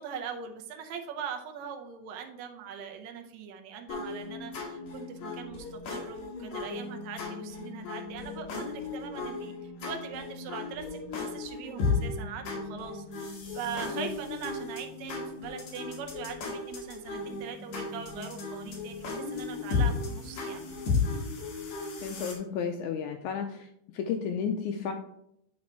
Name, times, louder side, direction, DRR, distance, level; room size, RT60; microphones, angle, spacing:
voice 1, 0.0-20.7, right 7 dB, 75° right, 4 dB, 1.7 m, -41 dB
sound 1, 3.9-22.3, left 4 dB, 60° left, 2.5 m, -35 dB
voice 2, 22.0-23.7 23.9-24.9, left 6 dB, 80° left, 6 dB, 1.7 m, -32 dB
8.5 x 3.9 x 4.4 m, 0.78 s
omnidirectional pair, 3.8 m